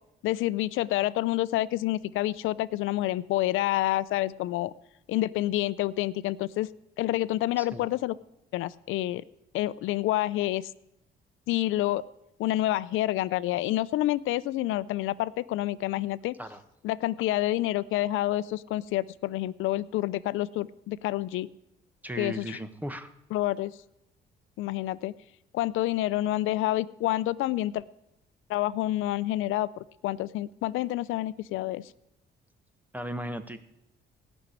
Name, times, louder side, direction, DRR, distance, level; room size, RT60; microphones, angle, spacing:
voice 1, 0.2-4.7 5.1-6.7 7.0-8.1 8.5-9.2 9.5-10.6 11.5-12.0 12.4-16.3 16.8-21.5 22.2-22.6 23.3-23.7 24.6-25.1 25.5-27.8 28.5-29.7 30.0-31.8, left 15 dB, 90° left, 16 dB, 0.5 m, -28 dB
voice 2, 22.0-23.1 32.9-33.6, right 1 dB, 10° right, 10 dB, 1.4 m, -36 dB
16.5 x 6.3 x 9.9 m, 0.86 s
cardioid pair, 90°, 20 cm